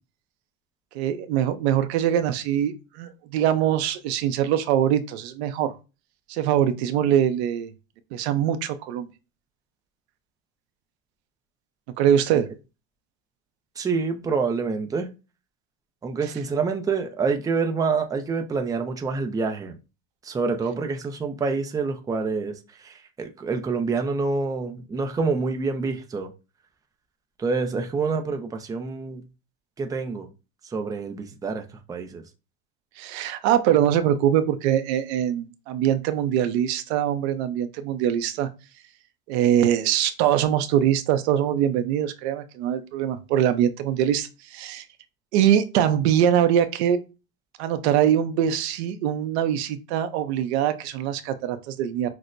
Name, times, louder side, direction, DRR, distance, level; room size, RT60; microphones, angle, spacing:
voice 1, 0.9-5.7 6.3-7.7 8.1-9.1 12.0-12.5 33.0-38.5 39.3-44.8 45.3-47.0 47.6-52.1, right 10 dB, 90° right, 0.7 m, -23 dB
voice 2, 13.8-15.1 16.0-19.7 20.2-26.3 27.4-29.2 29.8-30.3 30.7-32.2, right 4 dB, 10° right, 0.5 m, -27 dB
6.0 x 2.1 x 2.5 m
cardioid pair, 135°, 31 cm